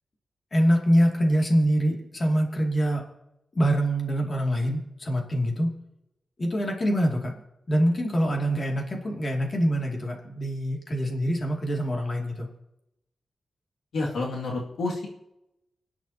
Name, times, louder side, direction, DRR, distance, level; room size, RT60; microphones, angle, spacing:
voice 1, 0.5-3.0 3.5-5.7 6.4-7.3 7.7-12.5, equal, 35° left, 0 dB, 2.5 m, -24 dB
voice 2, 13.9-15.1, left 3 dB, 90° left, -2 dB, 2.3 m, -29 dB
30.0 x 10.5 x 2.9 m, 0.88 s
wide cardioid pair, 115°, 0 cm